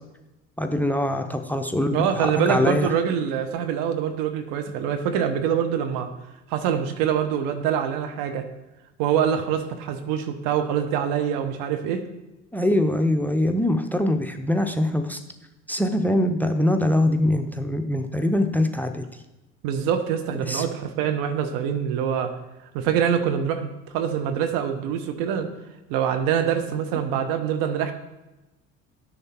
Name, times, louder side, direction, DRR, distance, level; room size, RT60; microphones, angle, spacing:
voice 1, 0.6-2.9 12.5-15.2 15.7-19.1 20.5-20.6, left 1 dB, 5° left, 8 dB, 0.7 m, -23 dB
voice 2, 1.9-6.1 6.5-8.5 9.0-12.1 19.6-22.3 22.7-25.5 25.9-27.9, right 8 dB, 60° right, 8 dB, 1.0 m, -25 dB
10.5 x 6.5 x 4.4 m, 1.0 s
figure-of-eight pair, 60°, 38 cm